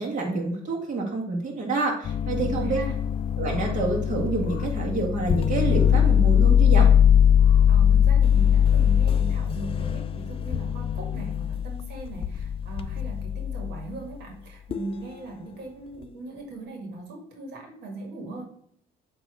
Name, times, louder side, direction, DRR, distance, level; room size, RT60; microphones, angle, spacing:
voice 1, 0.0-2.8 3.4-6.9, right 3 dB, 45° right, 0 dB, 1.9 m, -28 dB
sound 1, 2.0-13.8 14.7-15.0, left 9 dB, 35° left, 0.4 m, -21 dB
sound 2, 2.3-9.8, left 6 dB, 55° left, 0.8 m, -44 dB
voice 2, 2.3-3.0 7.7-18.4, right 2 dB, 85° right, 1 dB, 1.8 m, -39 dB
7.9 x 3.1 x 6.1 m, 0.64 s
cardioid pair, 110°, 17 cm